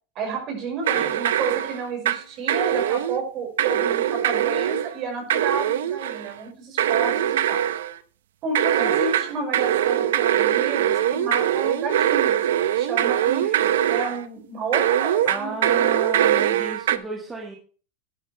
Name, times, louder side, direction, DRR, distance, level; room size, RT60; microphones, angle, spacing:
voice 1, 0.2-7.6 8.4-12.4 12.8-15.7, right 4 dB, 40° right, 2 dB, 5.8 m, -31 dB
sound 1, 0.8-2.2 2.5-3.2 3.6-4.9 5.3-6.3 6.8-7.9 8.5-14.2 14.7-17.0, right 11 dB, 85° right, 0.8 m, -22 dB
voice 2, 15.2-17.6, right 2 dB, 10° right, 0 dB, 1.8 m, -34 dB
11.5 x 11.0 x 3.4 m, 0.41 s
supercardioid pair, 145°, 0 cm